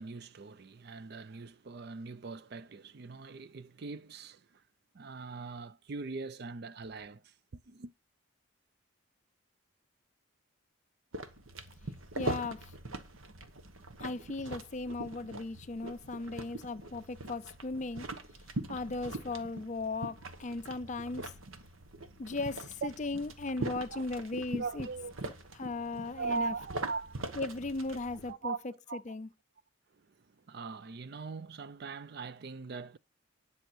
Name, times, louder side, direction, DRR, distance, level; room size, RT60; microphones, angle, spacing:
voice 1, 0.0-4.6 4.9-7.9 23.6-24.0 24.6-25.1 26.1-27.4 28.3-28.6 28.9-29.0 30.0-33.0, right 4 dB, 50° right, 0.4 m, -41 dB
sound 1, 11.1-28.3, right 2 dB, 75° right, 1.3 m, -42 dB
voice 2, 12.1-12.7 14.0-18.1 18.7-21.3 22.2-24.9 25.6-26.5 27.4-28.5 28.9-29.3, left 3 dB, 35° left, 0.4 m, -37 dB
10.5 x 5.6 x 6.2 m
head